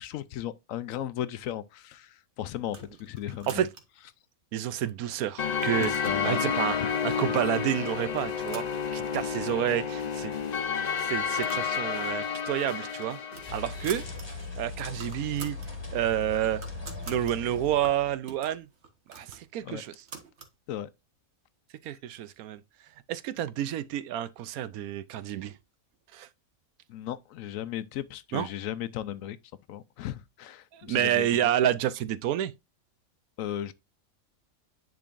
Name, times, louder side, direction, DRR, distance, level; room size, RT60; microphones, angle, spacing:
voice 1, 0.0-3.7 5.8-6.4 19.6-19.8 20.7-20.9 26.9-29.4 29.7-31.2 33.4-33.7, left 11 dB, 75° left, 0.9 m, -36 dB
sound 1, 2.6-4.1 4.6-5.1 5.4-6.3 7.0-7.1 7.5-7.8 8.1-9.3 9.7-9.8 10.0-10.1 10.8-11.7 12.0-12.2 12.6-14.3 14.6-14.7 14.9-15.7 16.1-17.3 17.8-20.5, right 5 dB, 50° right, 1.5 m, -47 dB
voice 2, 4.5-6.8 7.0-8.6 8.9-10.3 11.0-13.2 13.5-14.0 14.6-15.6 15.9-16.6 17.1-18.7 19.1-20.0 21.8-22.6 23.1-25.6 26.1-26.3 28.3-28.5 30.7-32.5, right 11 dB, 85° right, 1.1 m, -29 dB
sound 2, 5.4-14.2, left 6 dB, 45° left, 0.6 m, -31 dB
sound 3, 13.5-18.2, left 3 dB, 20° left, 1.9 m, -39 dB
10.5 x 3.8 x 2.5 m
omnidirectional pair, 1.5 m